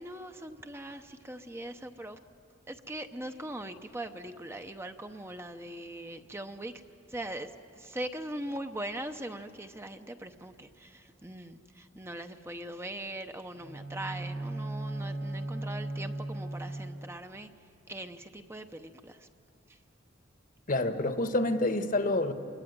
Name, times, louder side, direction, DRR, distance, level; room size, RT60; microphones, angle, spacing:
voice 1, 0.0-2.2 2.7-6.7 7.1-17.5 17.9-19.2, right 1 dB, 15° right, 7 dB, 0.8 m, -41 dB
Bowed string instrument, 13.5-17.3, right 2 dB, 70° right, 4.4 m, -37 dB
voice 2, 20.7-22.3, left 2 dB, 45° left, 9 dB, 1.3 m, -28 dB
26.5 x 20.5 x 9.4 m, 2.4 s
head